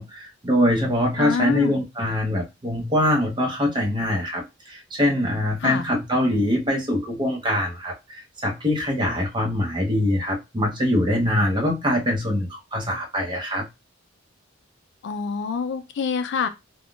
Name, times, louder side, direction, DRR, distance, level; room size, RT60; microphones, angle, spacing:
voice 1, 0.0-13.7, left 1 dB, 25° right, 0.8 m, -23 dB
voice 2, 1.2-1.8 5.6-5.8 15.0-16.5, left 6 dB, 60° left, 0.4 m, -26 dB
3.5 x 2.2 x 2.4 m
head